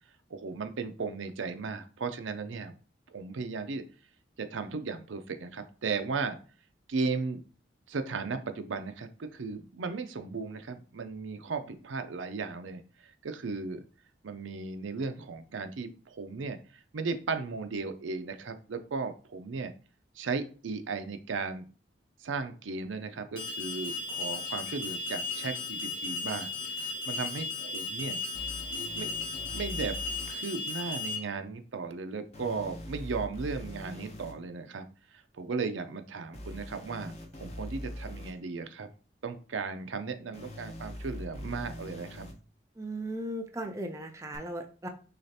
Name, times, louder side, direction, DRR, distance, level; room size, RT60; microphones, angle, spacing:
voice 1, 0.3-2.7 3.1-3.8 4.4-6.4 6.9-7.4 7.9-13.8 14.2-19.7 20.2-21.6 22.2-28.2 28.7-29.2 29.5-30.0 30.3-34.9 35.1-38.9 39.2-42.2, right 4 dB, 85° right, 8 dB, 0.5 m, -36 dB
Alarm, 23.4-31.2, left 3 dB, 90° left, 1.6 m, -35 dB
sound 1, 28.3-30.3 32.3-34.3 36.3-38.3 40.3-42.3 44.3-44.4, left 1 dB, 35° left, 0.7 m, -42 dB
voice 2, 42.8-44.9, right 1 dB, 15° right, 4 dB, 0.4 m, -37 dB
6.4 x 2.4 x 2.8 m, 0.37 s
head